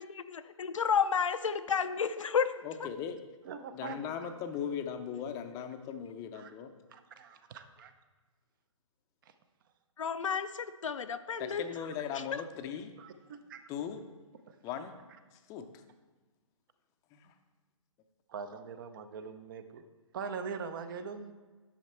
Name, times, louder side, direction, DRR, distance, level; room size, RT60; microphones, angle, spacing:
voice 1, 0.0-2.9 10.0-11.7 12.1-12.2, left 6 dB, 70° left, 11 dB, 0.6 m, -31 dB
voice 2, 2.6-3.2 3.7-6.7 11.4-12.9 13.7-14.0 14.6-14.9 15.5-15.7 17.1-17.3, left 8 dB, 20° left, 7 dB, 0.6 m, -38 dB
voice 3, 3.4-4.3 6.3-6.5 6.9-7.9 9.2-9.3 13.0-13.6 14.5-14.6 18.3-19.8 20.1-21.3, right 5 dB, 40° right, 10 dB, 0.7 m, -42 dB
10.0 x 6.5 x 4.4 m, 1.3 s
figure-of-eight pair, 130°, 17 cm